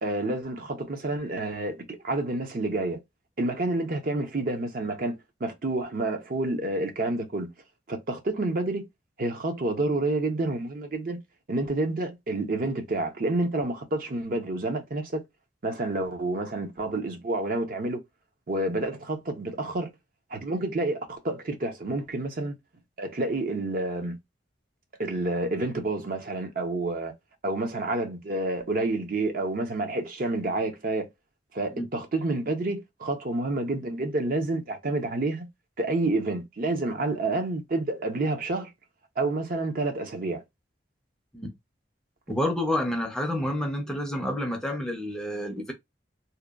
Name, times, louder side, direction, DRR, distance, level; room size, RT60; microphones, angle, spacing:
voice 1, 0.0-3.0 3.4-7.5 7.9-8.9 9.2-11.2 11.5-15.2 15.6-18.0 18.5-19.9 20.3-22.6 23.0-24.2 25.0-27.1 27.4-31.1 31.5-35.5 35.8-38.7 39.2-40.4, right 2 dB, 50° right, 0.6 m, -29 dB
voice 2, 42.3-45.7, left 1 dB, 5° left, 0.5 m, -29 dB
2.8 x 2.2 x 2.3 m
head